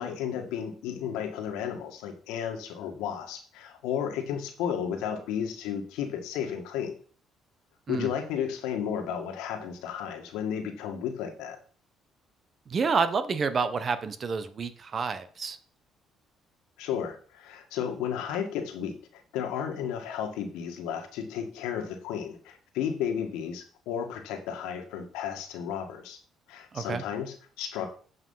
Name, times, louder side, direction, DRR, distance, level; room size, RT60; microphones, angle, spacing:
voice 1, 0.0-7.0 7.9-11.6 16.8-26.2 26.5-27.9, left 8 dB, 90° left, 5 dB, 1.8 m, -33 dB
voice 2, 12.7-15.6 26.7-27.0, right 5 dB, 45° right, 12 dB, 1.1 m, -29 dB
8.3 x 5.4 x 5.7 m, 0.43 s
cardioid pair, 85°, 0 cm